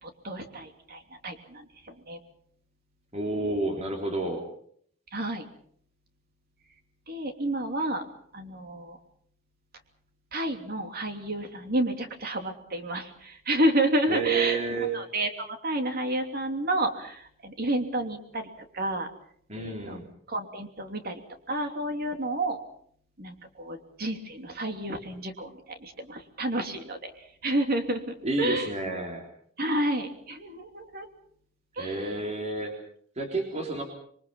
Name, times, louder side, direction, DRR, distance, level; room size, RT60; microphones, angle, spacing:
voice 1, 0.0-2.2 5.1-5.5 7.1-8.0 8.3-9.0 10.3-19.1 19.6-20.0 20.3-21.2 21.5-22.6 23.2-28.7 29.6-31.1 31.7-32.1, right 1 dB, 50° right, 5 dB, 3.0 m, -30 dB
voice 2, 3.1-4.4 14.1-14.9 19.5-20.1 28.2-29.3 31.8-32.8 33.2-33.8, right 3 dB, 35° right, 1 dB, 3.7 m, -30 dB
27.0 x 22.5 x 5.6 m, 0.62 s
head